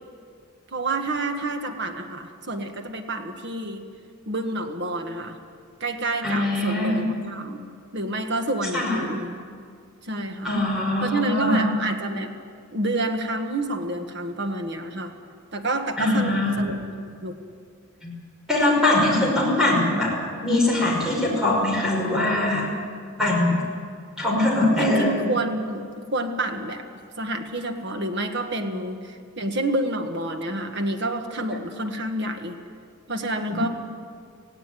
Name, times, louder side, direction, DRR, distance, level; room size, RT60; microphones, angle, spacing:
voice 1, 0.7-3.8 4.3-5.4 5.8-7.7 7.9-9.4 10.0-10.5 11.0-12.3 12.7-15.1 15.5-16.7 17.2-17.4 24.8-26.8 27.2-32.5 33.1-33.7, right 2 dB, 55° right, 5 dB, 1.6 m, -28 dB
voice 2, 6.2-7.1 8.7-9.1 10.4-11.8 16.0-16.5 18.0-18.1 18.5-20.1 20.4-22.7 23.2-23.7 24.2-25.3, left 2 dB, 5° right, -3 dB, 5.5 m, -22 dB
17.5 x 16.5 x 9.3 m, 2.2 s
head